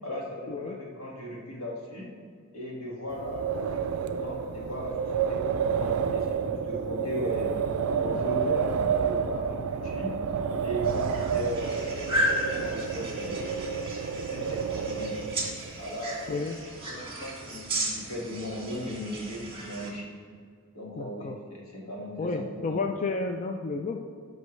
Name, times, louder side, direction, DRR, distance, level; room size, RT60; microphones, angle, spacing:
voice 1, 0.0-2.1 2.5-7.5 8.0-10.1 10.6-13.4 14.2-15.2 15.8-16.5 16.8-20.1 20.7-22.8, left 1 dB, 80° left, -3 dB, 2.0 m, -37 dB
Wind, 3.1-15.7, right 6 dB, 75° right, 0.4 m, -30 dB
sound 1, 10.8-19.9, right 1 dB, 25° right, 1.8 m, -34 dB
voice 2, 21.0-21.4 22.2-24.0, left 3 dB, 35° left, 4 dB, 0.4 m, -31 dB
13.0 x 5.3 x 3.2 m, 2.1 s
head